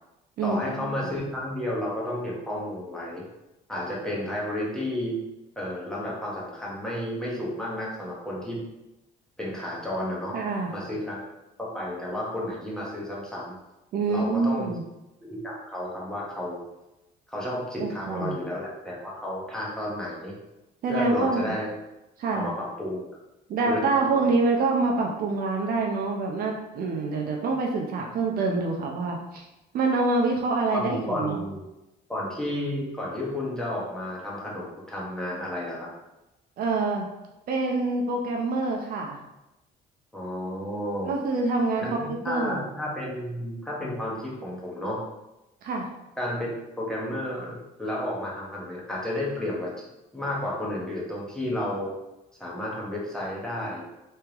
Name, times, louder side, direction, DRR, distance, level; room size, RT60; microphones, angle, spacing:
voice 1, 0.4-3.2 3.7-5.2 5.6-8.6 9.4-10.3 10.7-11.2 11.6-13.6 14.1-14.8 15.2-16.6 17.3-20.3 20.9-21.7 22.3-23.0 23.6-24.3 30.7-31.6 32.1-35.9 40.1-41.1 41.8-45.0 46.2-49.9 50.1-51.9 52.4-53.9, left 1 dB, 5° left, -6 dB, 1.2 m, -32 dB
voice 2, 10.3-10.7 13.9-14.8 17.8-18.4 20.8-21.5 22.2-22.5 23.5-29.4 29.7-31.4 36.6-37.1 37.5-39.2 41.0-42.6 45.6-45.9, right 3 dB, 60° right, 1 dB, 0.6 m, -26 dB
3.4 x 3.3 x 2.9 m, 0.94 s
cardioid pair, 110°, 17 cm